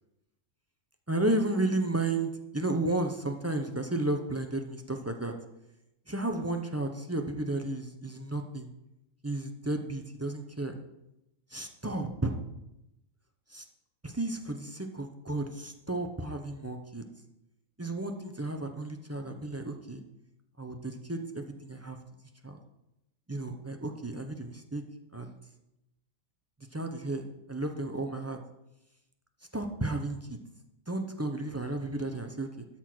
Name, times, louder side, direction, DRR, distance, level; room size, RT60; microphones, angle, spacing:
voice 1, 1.1-5.3 6.1-8.7 9.2-10.8 11.5-12.4 13.5-13.6 14.0-17.1 17.8-20.0 20.6-22.0 22.4-22.6 23.3-24.8 25.1-25.4 26.7-27.2 27.5-28.4 29.5-30.4 30.9-32.7, right 2 dB, 15° right, 4 dB, 0.5 m, -33 dB
13.0 x 4.4 x 6.0 m, 0.89 s
omnidirectional pair, 1.4 m